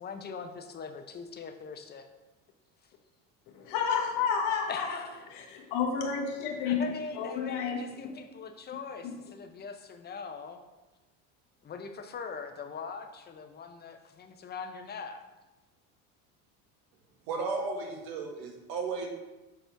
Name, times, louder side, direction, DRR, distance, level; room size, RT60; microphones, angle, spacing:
voice 1, 0.0-2.1 4.7-5.2 6.6-10.6 11.6-15.2, left 5 dB, 25° left, 6 dB, 0.8 m, -41 dB
voice 2, 3.5-5.0 5.3-6.9 7.2-8.1, left 6 dB, 75° left, 1 dB, 1.3 m, -30 dB
voice 3, 17.3-19.1, right 4 dB, 65° right, 2 dB, 1.6 m, -34 dB
6.9 x 4.2 x 4.5 m, 1.1 s
supercardioid pair, 110°, 38 cm